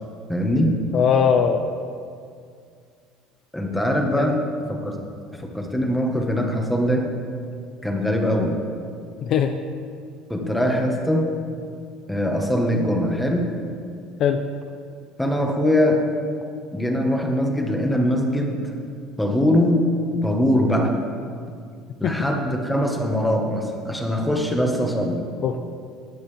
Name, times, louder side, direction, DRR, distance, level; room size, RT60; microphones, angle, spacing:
voice 1, 0.3-0.7 3.5-4.4 4.7-5.0 5.3-7.1 7.8-8.5 10.3-11.3 12.1-13.5 15.2-16.0 16.7-18.6 19.2-19.9 20.2-20.9 22.0-25.2, equal, 5° left, 1 dB, 1.6 m, -22 dB
voice 2, 0.9-1.6 4.1-4.3 9.2-9.5 14.2-14.4 22.0-22.2 25.4-25.6, left 7 dB, 45° left, 6 dB, 0.6 m, -20 dB
20.0 x 9.4 x 3.5 m, 2.2 s
cardioid pair, 140°, 0 cm